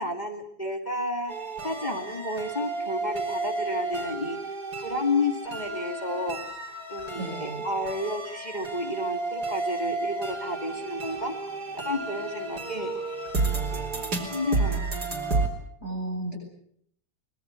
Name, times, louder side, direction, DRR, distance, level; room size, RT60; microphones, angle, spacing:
voice 1, 0.0-1.3 1.6-4.4 4.8-6.4 6.9-11.3 11.8-12.9 13.7-13.9 14.3-14.8, left 1 dB, 25° left, 4 dB, 2.5 m, -31 dB
sound 1, 1.3-15.5, right 3 dB, 70° right, 4.4 m, -32 dB
voice 2, 7.1-7.7 15.8-16.4, right 2 dB, 40° right, 0 dB, 8.3 m, -33 dB
24.5 x 21.0 x 8.2 m, 0.68 s
omnidirectional pair, 1.8 m